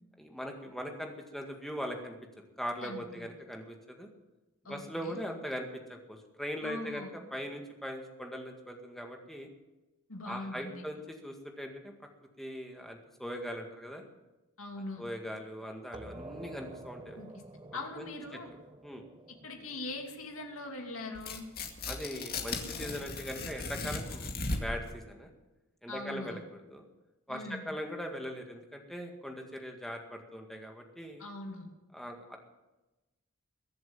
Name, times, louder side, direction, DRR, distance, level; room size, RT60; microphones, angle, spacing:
voice 1, 0.2-2.2 2.6-4.1 4.7-9.5 10.2-11.9 12.4-14.0 15.0-17.2 17.7-18.4 18.8-19.0 21.9-25.3 25.8-26.4 26.7-26.9 27.3-31.2 31.9-32.4, equal, ahead, 2 dB, 1.9 m, -40 dB
voice 2, 2.8-3.3 4.6-5.2 6.6-7.1 10.1-10.8 14.6-15.0 17.2-17.4 17.7-18.5 19.3-21.5 25.9-26.4 27.3-27.7 31.2-31.7, left 2 dB, 65° left, 2 dB, 2.8 m, -42 dB
sound 1, 15.9-21.3, right 2 dB, 20° right, 0.9 m, -50 dB
Tearing, 21.1-24.9, left 3 dB, 45° left, 2.1 m, -37 dB
22.0 x 7.8 x 7.2 m, 1.0 s
head